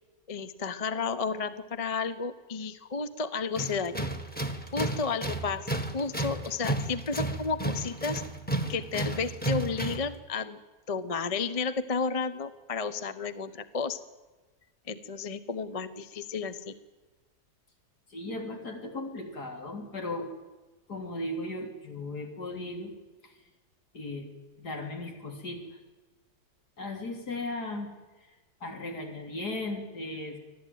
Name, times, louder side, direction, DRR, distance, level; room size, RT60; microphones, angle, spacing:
voice 1, 0.3-3.9 4.7-8.2 8.7-10.6 10.9-14.0 14.9-16.7, left 5 dB, 30° left, 12 dB, 0.7 m, -32 dB
Tools, 3.6-10.1, right 1 dB, 5° left, 1.7 m, -33 dB
voice 2, 18.1-20.4 20.9-22.9 23.2-23.3 23.9-24.3 24.6-25.8 26.8-27.9 28.6-30.4, left 2 dB, 85° left, 2 dB, 3.8 m, -36 dB
25.0 x 15.5 x 9.3 m, 1.2 s
omnidirectional pair, 1.7 m